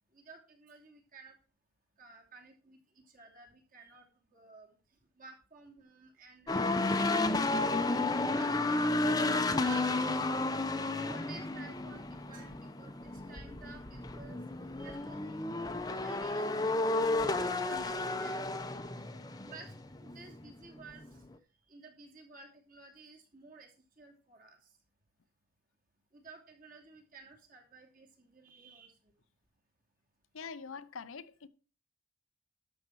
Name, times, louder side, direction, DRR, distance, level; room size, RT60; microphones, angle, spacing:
voice 1, 0.1-1.4 2.0-9.2 9.6-10.5 10.9-14.4 14.8-18.5 19.4-21.2 21.7-24.7 26.1-29.1, right 4 dB, 40° right, 2.9 m, -54 dB
sound 1, 6.5-20.5 20.8-21.1, left 2 dB, 20° left, 0.7 m, -32 dB
voice 2, 30.3-31.5, left 5 dB, 80° left, 0.7 m, -44 dB
12.0 x 6.5 x 4.6 m
head